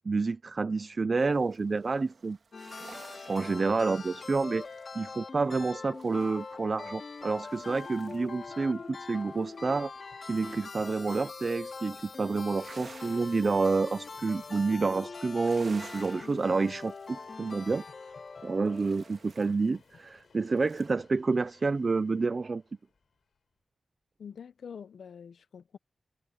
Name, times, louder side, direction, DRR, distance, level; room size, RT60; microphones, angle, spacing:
voice 1, 0.1-2.4 3.3-4.6 4.9-9.9 10.2-17.8 18.4-22.6, right 4 dB, 35° right, 0.4 m, -29 dB
sound 1, 1.2-8.4 8.8-11.5 11.9-20.9, right 4 dB, 50° right, 1.5 m, -55 dB
sound 2, 2.5-19.1, left 4 dB, 45° left, 2.0 m, -43 dB
Train, 5.1-23.4, left 6 dB, 65° left, 4.3 m, -62 dB
voice 2, 24.2-25.8, left 7 dB, 80° left, 0.8 m, -45 dB
wide cardioid pair, 170°, 0 cm